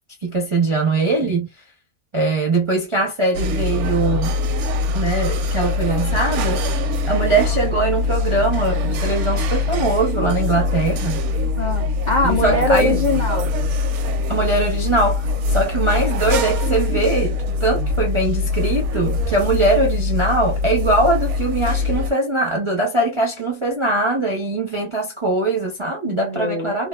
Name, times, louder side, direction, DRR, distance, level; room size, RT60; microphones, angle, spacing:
voice 1, 0.2-1.5 2.1-4.4 4.9-6.8 7.1-11.2 12.2-13.0 14.3-26.9, right 2 dB, 45° right, 0.3 m, -21 dB
sound 1, 3.3-22.1, left 3 dB, 70° right, 0.7 m, -22 dB
voice 2, 11.6-13.5 26.0-26.7, left 2 dB, 75° left, 0.4 m, -22 dB
2.8 x 2.4 x 2.2 m
omnidirectional pair, 1.6 m